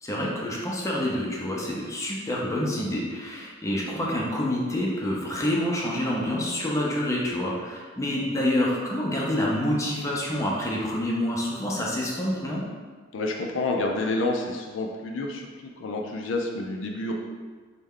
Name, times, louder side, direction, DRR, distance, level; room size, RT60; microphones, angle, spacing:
voice 1, 0.0-12.6, left 1 dB, 15° left, -3 dB, 0.5 m, -27 dB
voice 2, 13.1-17.1, left 2 dB, 75° left, 2 dB, 0.4 m, -29 dB
3.2 x 2.2 x 3.5 m, 1.5 s
head